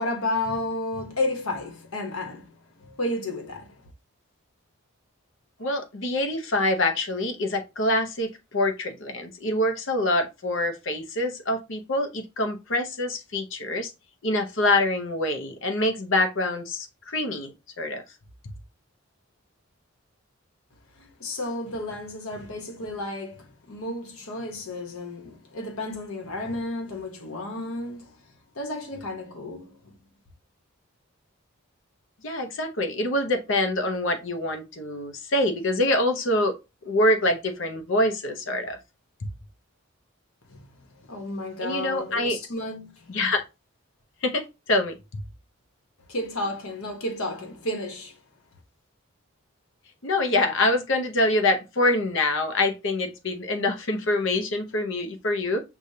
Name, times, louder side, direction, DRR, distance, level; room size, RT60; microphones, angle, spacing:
voice 1, 0.0-3.9 20.9-28.2 28.5-29.9 40.5-43.2 46.1-48.2, left 2 dB, 80° left, 1.1 m, -32 dB
voice 2, 5.6-13.9 14.2-18.0 32.2-36.5 36.8-38.8 41.6-42.4 43.1-43.4 44.2-45.0 50.0-55.6, left 1 dB, 60° left, 0.7 m, -25 dB
6.5 x 2.4 x 2.7 m
head